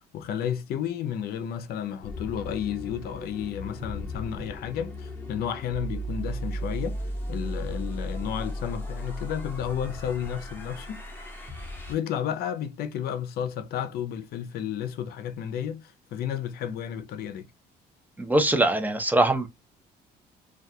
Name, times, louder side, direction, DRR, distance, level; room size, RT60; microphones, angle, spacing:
voice 1, 0.0-11.0 11.9-17.5, left 9 dB, 65° left, 0.5 m, -32 dB
sound 1, 2.0-12.0, equal, 10° left, 0.8 m, -36 dB
voice 2, 18.2-19.5, right 2 dB, 10° right, 0.5 m, -22 dB
2.3 x 2.2 x 2.6 m
cardioid pair, 110°, 17 cm